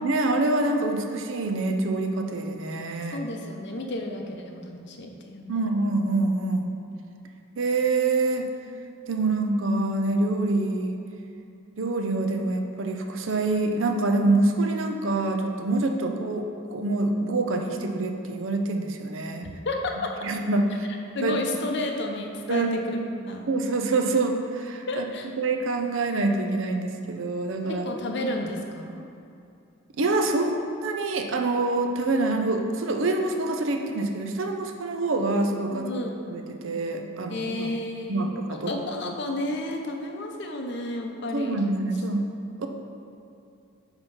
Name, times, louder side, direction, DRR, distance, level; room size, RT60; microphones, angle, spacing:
voice 1, 0.0-3.2 5.5-6.7 7.6-8.5 9.1-11.0 11.8-19.5 20.2-20.9 21.2-21.4 22.5-22.7 23.5-25.0 25.4-27.9 30.0-35.9 36.3-37.7 38.1-38.7 41.3-42.3 42.6-42.7, right 2 dB, 65° right, 4 dB, 0.6 m, -26 dB
voice 2, 3.1-5.7 15.8-16.1 19.6-20.1 21.1-22.8 23.1-23.5 24.9-25.3 27.7-29.0 35.7-36.2 37.3-41.6, left 2 dB, 55° left, 2 dB, 0.7 m, -32 dB
5.3 x 4.4 x 5.5 m, 2.6 s
head